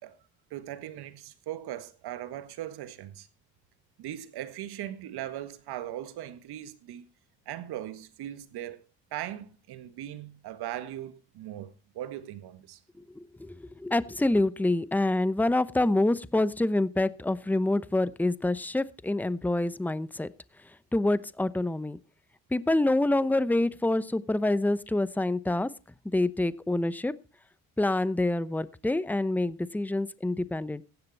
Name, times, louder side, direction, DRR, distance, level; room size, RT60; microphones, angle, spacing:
voice 1, 0.5-3.3 4.0-7.0 7.4-8.8 9.1-12.8, right 12 dB, 75° right, 1.7 m, -39 dB
voice 2, 13.1-20.3 20.9-22.0 22.5-25.7 26.0-27.1 27.8-30.8, left 2 dB, 5° left, 0.8 m, -26 dB
15.5 x 10.5 x 4.2 m
supercardioid pair, 70°, 39 cm